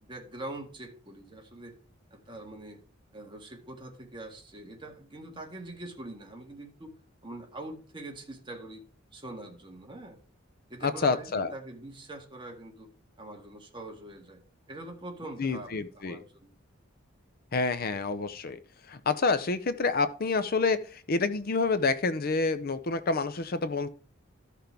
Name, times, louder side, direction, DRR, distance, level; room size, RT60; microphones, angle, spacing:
voice 1, 0.0-1.7 2.1-2.8 3.1-8.8 9.1-10.2 10.7-12.9 13.2-16.5, right 2 dB, 25° right, 2 dB, 1.8 m, -44 dB
voice 2, 10.8-11.5 15.4-16.2 17.5-18.6 18.9-23.9, left 4 dB, 50° left, 12 dB, 0.6 m, -28 dB
14.0 x 5.8 x 3.5 m, 0.41 s
head